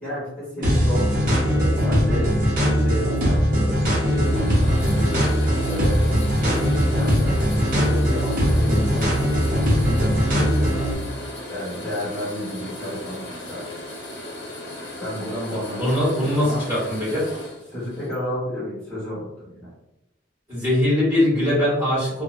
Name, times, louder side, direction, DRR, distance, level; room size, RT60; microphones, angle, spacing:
voice 1, 0.0-2.3 2.6-6.0 6.4-7.4 7.7-9.3 9.7-11.2 11.5-13.6 15.0-16.6 17.7-19.7, left 1 dB, 10° left, -11 dB, 1.4 m, -31 dB
sound 1, 0.6-10.9, equal, 45° right, 0.6 m, -20 dB
sound 2, 2.7-18.2, left 1 dB, 80° left, 0.7 m, -37 dB
voice 2, 15.8-17.2 20.5-22.2, left 1 dB, 15° right, -12 dB, 1.3 m, -21 dB
2.6 x 2.0 x 2.4 m, 0.90 s
head